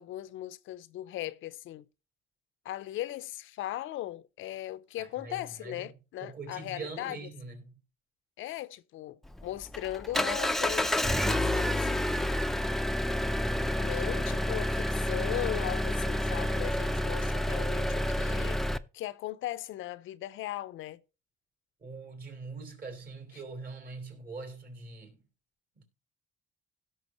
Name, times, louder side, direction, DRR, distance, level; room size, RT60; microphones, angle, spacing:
voice 1, 0.0-1.9 2.6-7.2 8.4-12.0 13.7-18.6 18.9-21.0 23.3-23.4, left 14 dB, 85° left, 0.6 m, -38 dB
voice 2, 5.0-5.9 6.2-7.7 13.2-14.0 21.8-25.2 25.8-25.9, right 3 dB, 50° right, 4.1 m, -43 dB
Engine, 9.3-18.8, left 1 dB, ahead, 0.5 m, -29 dB
16.5 x 6.3 x 3.0 m
cardioid pair, 90°, 20 cm